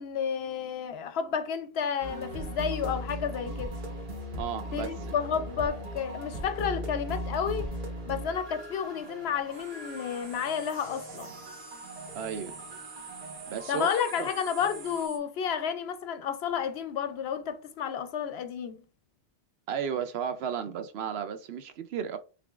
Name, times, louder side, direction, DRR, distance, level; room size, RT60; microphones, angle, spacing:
voice 1, 0.0-3.7 4.7-7.7 8.1-11.3 13.7-18.8, left 7 dB, 70° left, 0.8 m, -31 dB
sound 1, 2.0-15.1, equal, 45° right, 1.2 m, -39 dB
voice 2, 4.4-5.2 12.1-12.5 13.5-13.9 14.2-14.3 19.7-22.2, right 8 dB, 70° right, 0.8 m, -34 dB
sound 2, 9.2-9.3 9.5-15.2, right 6 dB, 85° right, 1.3 m, -47 dB
4.9 x 3.3 x 2.4 m
omnidirectional pair, 1.2 m